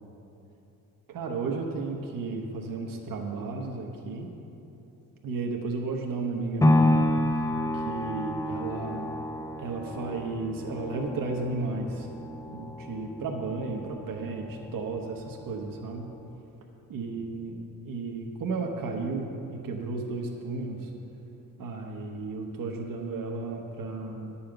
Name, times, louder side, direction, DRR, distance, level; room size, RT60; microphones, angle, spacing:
voice 1, 1.1-4.3 5.2-7.0 7.7-9.2 9.6-12.1 12.5-16.1 16.9-17.5 17.8-20.9 21.6-24.4, right 3 dB, 75° right, 1 dB, 1.1 m, -33 dB
sound 1, 6.6-14.7 15.2-15.3, left 1 dB, 10° left, 0.4 m, -29 dB
10.0 x 5.6 x 7.8 m, 3.0 s
wide cardioid pair, 145°, 34 cm